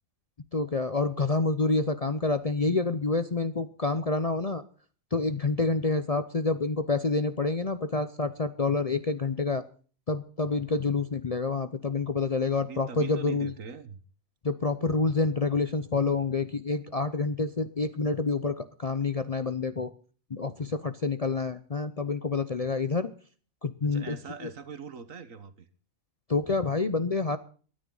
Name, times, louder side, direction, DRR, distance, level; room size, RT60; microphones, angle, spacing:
voice 1, 0.5-4.6 5.1-9.7 10.1-13.5 14.4-19.9 20.3-23.1 23.6-24.2 26.3-27.4, left 3 dB, 35° left, 11 dB, 0.6 m, -28 dB
voice 2, 12.6-14.0 23.9-25.7, right 6 dB, 75° right, 12 dB, 1.7 m, -42 dB
22.5 x 9.9 x 3.9 m, 0.40 s
omnidirectional pair, 1.4 m